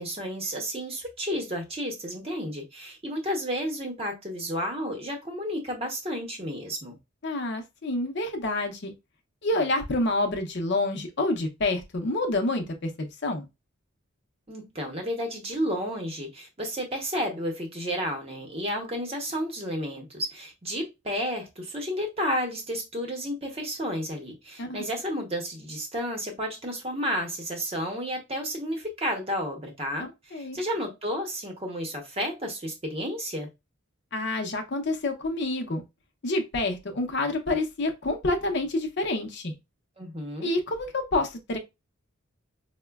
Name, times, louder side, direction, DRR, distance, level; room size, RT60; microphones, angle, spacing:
voice 1, 0.0-7.0 14.5-33.5 40.0-40.5, equal, 30° right, 0.8 m, -32 dB
voice 2, 7.2-8.9 9.4-13.5 24.6-24.8 30.0-30.6 34.1-35.8 36.2-39.5 40.4-41.6, left 2 dB, 55° left, 0.6 m, -28 dB
4.7 x 2.1 x 2.2 m
head